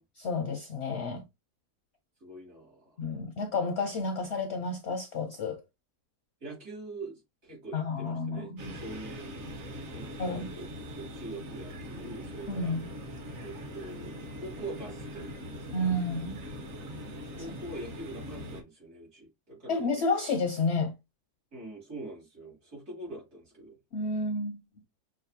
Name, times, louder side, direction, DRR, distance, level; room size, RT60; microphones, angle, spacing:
voice 1, 0.2-1.2 3.0-5.6 7.7-8.7 10.2-10.5 12.5-12.8 15.7-16.4 17.4-17.5 19.7-20.9 23.9-24.6, left 3 dB, 65° left, 0.7 m, -31 dB
voice 2, 2.2-3.0 6.4-9.6 9.9-10.7 10.9-12.8 13.4-16.0 17.3-19.9 21.5-23.8, right 2 dB, 65° right, 3.2 m, -44 dB
sound 1, 8.6-18.6, equal, 50° right, 1.1 m, -42 dB
6.3 x 2.4 x 2.7 m
omnidirectional pair, 1.7 m